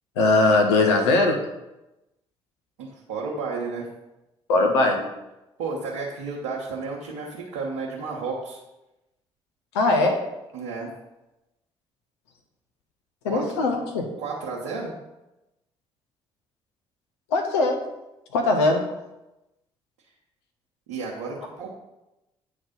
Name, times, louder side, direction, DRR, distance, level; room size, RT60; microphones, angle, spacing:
voice 1, 0.2-1.4 4.5-5.0 9.7-10.2 13.2-14.1 17.3-17.8 18.3-18.9, left 2 dB, 80° left, 3 dB, 0.8 m, -20 dB
voice 2, 2.8-3.9 5.6-8.6 10.5-10.9 13.2-13.5 14.2-14.9 20.9-21.8, right 4 dB, 75° right, -4 dB, 1.0 m, -32 dB
8.9 x 3.2 x 5.2 m, 0.97 s
figure-of-eight pair, 45°, 14 cm